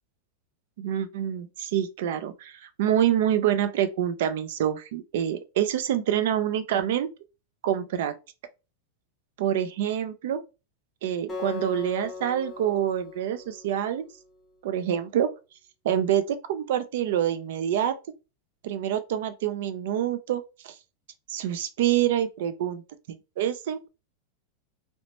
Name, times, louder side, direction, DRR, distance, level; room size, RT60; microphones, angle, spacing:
voice 1, 0.8-7.1 7.6-8.1 9.4-10.4 11.0-14.1 14.6-15.3 15.8-17.9 18.6-20.7 21.3-22.8 23.4-23.9, right 10 dB, 65° right, 0.4 m, -26 dB
Acoustic guitar, 11.3-14.5, left 5 dB, 15° left, 0.7 m, -39 dB
2.9 x 2.0 x 2.9 m
supercardioid pair, 165°, 0 cm